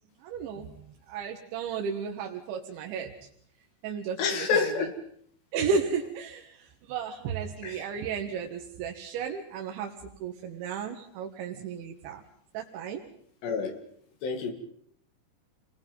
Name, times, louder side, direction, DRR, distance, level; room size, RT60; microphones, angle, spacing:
voice 1, 0.2-3.1 3.8-4.7 5.5-12.2 12.5-13.0, right 6 dB, 90° right, 2 dB, 3.7 m, -34 dB
voice 2, 4.2-4.9 7.6-7.8 13.4-13.8 14.2-14.5, left 5 dB, 70° left, 6 dB, 4.5 m, -28 dB
29.5 x 21.0 x 5.4 m, 0.65 s
omnidirectional pair, 5.1 m